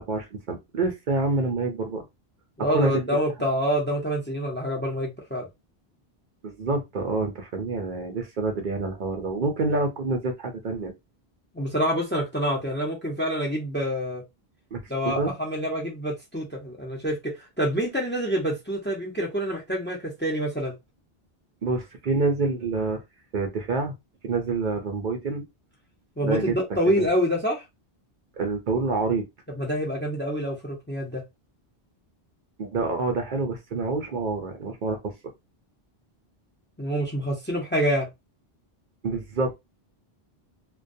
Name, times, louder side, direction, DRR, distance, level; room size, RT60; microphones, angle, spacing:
voice 1, 0.0-2.0 2.7-3.1 6.4-10.9 14.7-15.3 21.6-23.0 23.3-23.9 24.2-25.5 26.2-26.5 27.0-27.1 28.4-29.2 32.6-35.1 39.0-39.5, right 3 dB, 60° right, 0.7 m, -27 dB
voice 2, 2.6-5.5 11.5-14.2 14.9-20.7 26.2-27.6 29.6-31.2 36.8-38.1, equal, 15° left, 0.5 m, -27 dB
2.3 x 2.2 x 2.5 m
omnidirectional pair, 1.0 m